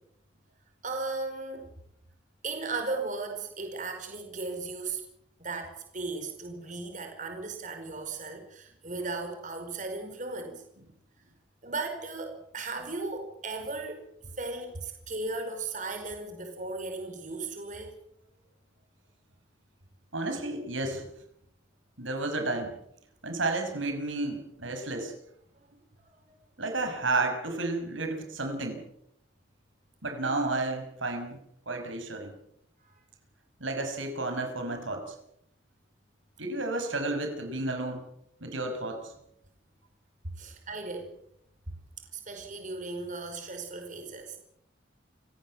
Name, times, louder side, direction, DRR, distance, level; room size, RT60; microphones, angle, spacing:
voice 1, 0.8-1.7 2.4-5.0 5.4-10.5 11.6-14.0 14.4-17.9 40.4-41.1 42.1-44.4, right 3 dB, 40° right, 5 dB, 4.9 m, -36 dB
voice 2, 20.1-21.1 22.0-22.7 23.2-25.1 26.6-28.9 30.0-31.4 31.7-32.3 33.6-35.1 36.4-38.0 38.4-39.1, right 2 dB, 80° right, 5 dB, 5.8 m, -31 dB
29.0 x 17.5 x 7.6 m, 0.75 s
head